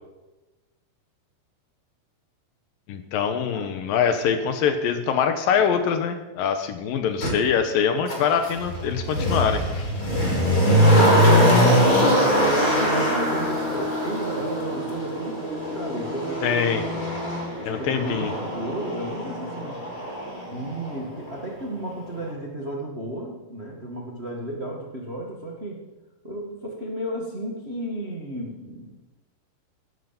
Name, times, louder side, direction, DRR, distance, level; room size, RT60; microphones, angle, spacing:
voice 1, 2.9-9.9 16.4-16.8 17.7-18.3, left 7 dB, 70° left, 8 dB, 2.4 m, -24 dB
Motor vehicle (road), 7.2-7.3 8.1-21.0 21.3-21.4, equal, 30° left, 5.5 m, -22 dB
voice 2, 11.2-17.1 17.6-19.8 20.5-25.8 26.2-29.0, right 1 dB, 85° right, 0 dB, 0.5 m, -34 dB
16.5 x 12.5 x 5.9 m, 1.1 s
omnidirectional pair, 4.8 m